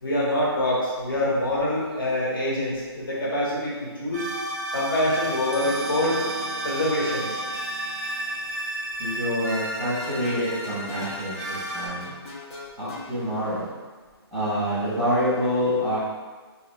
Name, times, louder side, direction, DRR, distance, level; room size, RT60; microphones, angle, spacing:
voice 1, 0.0-4.3 4.7-6.2 6.6-7.4, left 1 dB, 55° left, -6 dB, 1.3 m, -25 dB
sound 1, 4.1-11.9, right 1 dB, 10° right, 0.6 m, -32 dB
sound 2, 5.5-9.1, right 4 dB, 65° right, 0.4 m, -40 dB
voice 2, 9.0-12.1 12.8-13.7 14.3-16.0, equal, 5° left, -16 dB, 0.9 m, -26 dB
sound 3, 10.0-11.2 12.0-13.1, left 3 dB, 85° left, 1.3 m, -40 dB
3.3 x 2.9 x 3.2 m, 1.4 s
hypercardioid pair, 170°, 14 cm